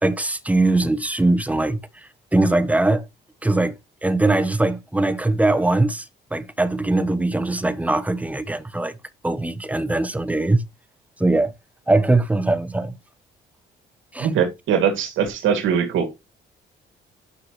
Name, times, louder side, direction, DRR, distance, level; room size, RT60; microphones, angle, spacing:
voice 1, 0.0-1.8 2.3-3.0 3.4-6.1 6.3-9.0 9.2-10.6 11.2-11.5 11.9-12.9 14.1-14.3, right 2 dB, 5° right, 1.0 m, -21 dB
voice 2, 14.2-16.1, right 7 dB, 80° right, 2.4 m, -21 dB
9.7 x 5.9 x 3.1 m
cardioid pair, 90°, 20 cm